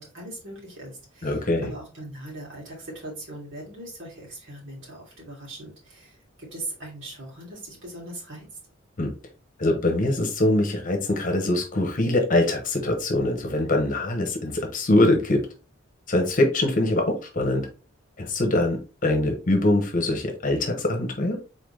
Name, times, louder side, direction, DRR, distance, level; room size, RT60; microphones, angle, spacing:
voice 1, 0.0-8.5, right 1 dB, 70° right, -4 dB, 2.8 m, -40 dB
voice 2, 1.2-1.7 9.0-9.1 9.6-15.4 16.1-17.7 18.2-21.4, left 1 dB, 45° left, 3 dB, 1.0 m, -23 dB
4.2 x 3.9 x 3.2 m, 0.33 s
head